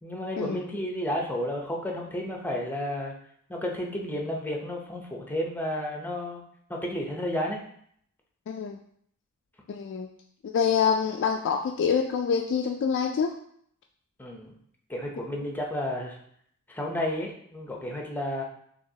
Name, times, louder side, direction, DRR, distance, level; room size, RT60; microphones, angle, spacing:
voice 1, 0.0-3.1 3.5-6.4 6.7-7.6 14.2-14.6 14.9-16.2 16.7-18.4, left 1 dB, 10° left, 0 dB, 0.6 m, -32 dB
voice 2, 8.5-8.8 9.7-10.1 10.4-13.4, left 6 dB, 55° left, 2 dB, 0.3 m, -26 dB
5.8 x 2.9 x 2.7 m, 0.66 s
head